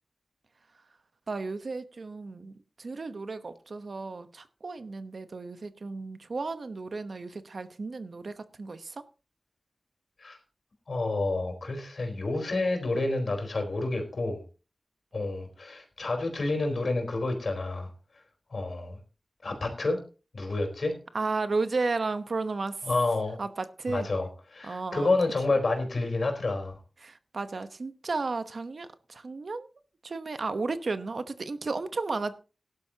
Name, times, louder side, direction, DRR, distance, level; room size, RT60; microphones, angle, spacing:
voice 1, 1.3-9.0 21.1-22.9 23.4-24.1 24.6-25.1 27.0-29.7 30.0-32.4, right 3 dB, 75° right, 1.0 m, -33 dB
voice 2, 10.9-14.4 15.1-17.9 18.5-19.0 19.4-20.0 20.3-21.0 22.8-23.4 23.9-26.7, left 2 dB, 75° left, 4.1 m, -29 dB
18.0 x 11.5 x 2.9 m
wide cardioid pair, 60°, 0 cm